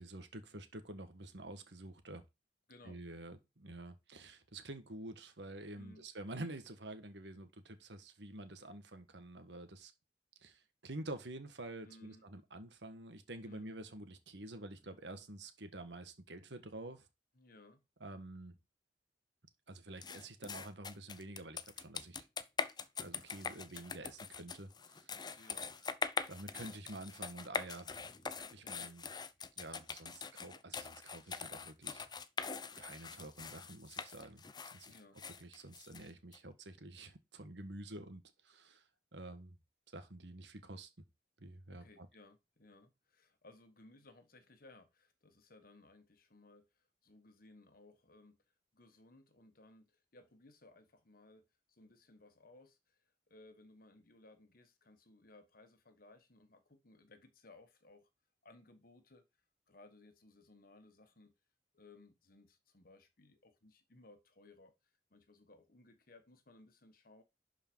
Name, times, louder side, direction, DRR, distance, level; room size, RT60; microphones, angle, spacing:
voice 1, 0.0-2.2 2.8-9.9 10.4-17.1 18.0-18.5 19.7-22.3 23.0-25.5 26.3-28.2 28.5-29.1 29.6-32.0 32.7-34.4 34.7-34.9 35.4-38.8 39.1-39.6 39.9-40.9 41.4-42.1, right 2 dB, 80° right, 1.5 m, -49 dB
voice 2, 2.7-3.0 5.8-6.0 11.8-12.2 13.4-13.7 17.3-17.8 25.3-25.8 28.6-29.0 34.8-35.2 41.7-48.4 48.7-53.0 53.3-58.1 58.4-59.3 59.7-61.3 61.7-67.2, left 2 dB, 55° left, 1.5 m, -61 dB
sound 1, 20.0-36.4, left 5 dB, 25° left, 0.6 m, -43 dB
11.5 x 4.9 x 4.7 m
head